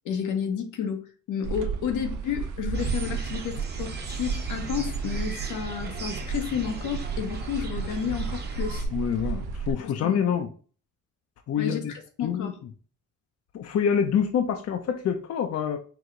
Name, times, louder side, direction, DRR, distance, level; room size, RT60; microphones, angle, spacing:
voice 1, 0.0-8.9 9.8-10.4 11.6-12.6, left 7 dB, 80° left, 0.9 m, -31 dB
sound 1, 1.4-9.7, right 6 dB, 85° right, 0.6 m, -33 dB
sound 2, 2.7-8.8, right 3 dB, 35° right, 1.0 m, -35 dB
voice 2, 8.9-10.5 11.5-11.8 12.2-12.5 13.5-15.8, left 8 dB, 55° left, 0.6 m, -26 dB
4.8 x 2.3 x 3.8 m
cardioid pair, 90°, 30 cm